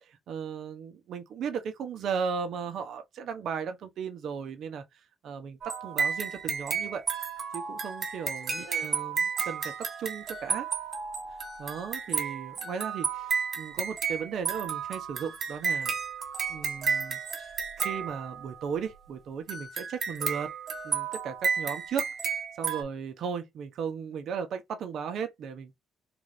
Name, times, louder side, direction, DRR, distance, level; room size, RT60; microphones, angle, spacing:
voice 1, 0.1-4.8 5.2-7.0 7.5-10.7 11.6-15.9 16.5-20.5 20.8-25.7, right 6 dB, 70° right, 0.9 m, -36 dB
sound 1, 5.6-18.7 19.5-22.8, right 6 dB, 50° right, 1.2 m, -32 dB
3.9 x 2.5 x 3.2 m
cardioid pair, 90°, 0 cm